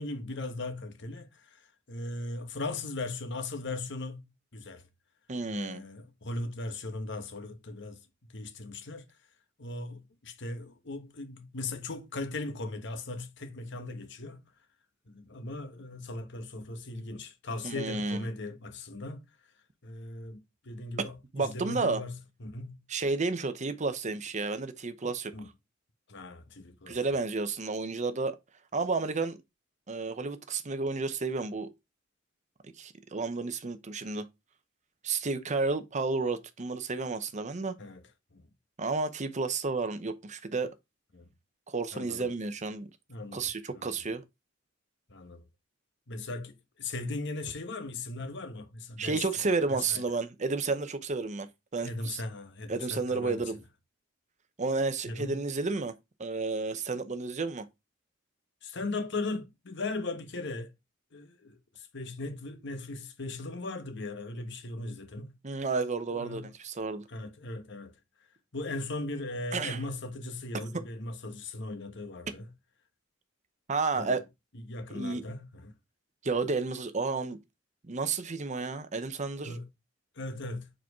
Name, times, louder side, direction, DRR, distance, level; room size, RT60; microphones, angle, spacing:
voice 1, 0.0-1.6 1.9-4.2 4.5-4.8 5.5-8.0 8.3-9.1 9.6-14.4 15.1-19.2 19.8-22.8 25.3-25.5 26.1-27.0 37.8-38.0 38.3-38.4 41.1-41.3 41.9-42.3 43.1-43.9 45.1-45.4 46.1-49.2 49.9-50.0 51.8-53.5 55.1-55.4 58.6-60.7 61.1-65.4 66.1-66.5 67.1-67.9 68.5-72.5 74.0-74.2 74.5-75.7 79.4-79.7 80.2-80.7, left 2 dB, 65° left, 1.2 m, -38 dB
voice 2, 5.3-5.8 17.6-18.2 21.3-22.0 22.9-25.3 26.9-28.4 28.7-29.4 29.9-31.7 32.8-34.3 35.0-37.7 38.8-40.7 41.7-42.9 43.3-44.2 49.0-52.2 52.7-53.6 54.6-55.9 56.2-57.7 65.4-67.1 69.5-69.8 73.7-74.2 74.9-75.2 76.2-77.4 77.8-79.6, right 3 dB, 35° right, 0.7 m, -31 dB
4.9 x 4.4 x 4.6 m
head